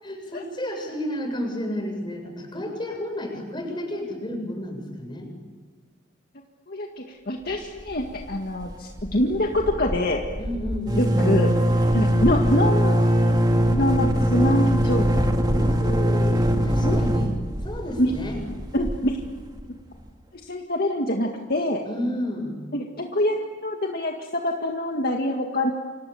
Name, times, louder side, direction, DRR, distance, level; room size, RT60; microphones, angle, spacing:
voice 1, 0.0-5.3 10.4-11.1 15.5-17.3 17.6-18.4 21.8-22.6, left 1 dB, 25° left, 3 dB, 7.4 m, -31 dB
voice 2, 6.7-10.2 11.0-11.5 11.9-13.1 13.7-15.3 16.8-17.0 18.7-19.2 19.6-19.7 20.4-21.8 22.7-23.4 23.6-25.7, left 1 dB, 55° left, 2 dB, 2.0 m, -25 dB
sound 1, 7.8-8.3 8.6-8.7 9.0-19.6, equal, 20° right, 2.1 m, -22 dB
29.5 x 27.0 x 7.1 m, 1.5 s
head